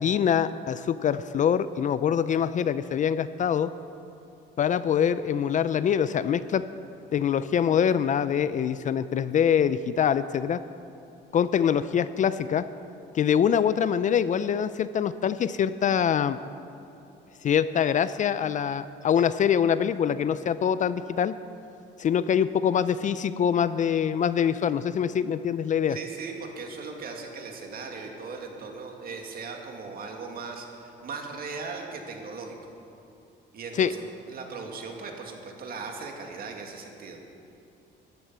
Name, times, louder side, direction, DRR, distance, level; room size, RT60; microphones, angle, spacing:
voice 1, 0.0-3.7 4.6-6.6 7.1-10.6 11.3-12.7 13.1-16.4 17.4-21.3 22.0-26.0 33.8-33.9, left 8 dB, 40° left, 14 dB, 0.4 m, -24 dB
voice 2, 25.9-32.6 33.5-34.0 34.3-37.2, right 4 dB, 50° right, 2 dB, 2.2 m, -38 dB
14.0 x 11.5 x 7.5 m, 2.7 s
cardioid pair, 130°, 19 cm